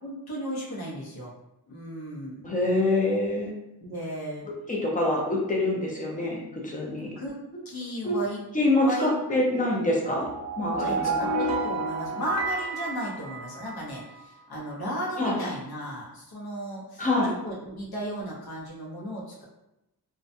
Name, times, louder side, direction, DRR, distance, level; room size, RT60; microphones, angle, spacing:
voice 1, 0.0-1.3 1.7-2.5 3.8-4.5 5.1-5.3 7.2-7.4 7.6-8.4 8.8-9.2 10.8-17.1 17.4-19.4, equal, 70° left, -4 dB, 0.8 m, -35 dB
voice 2, 2.4-3.5 4.7-7.1 8.0-8.2 8.5-10.3 10.6-11.0 15.2-15.4 17.0-17.3, left 2 dB, 20° left, -2 dB, 0.5 m, -25 dB
sound 1, 10.0-14.0, right 3 dB, 45° right, 0.5 m, -30 dB
2.4 x 2.1 x 2.6 m, 0.91 s
wide cardioid pair, 145°, 38 cm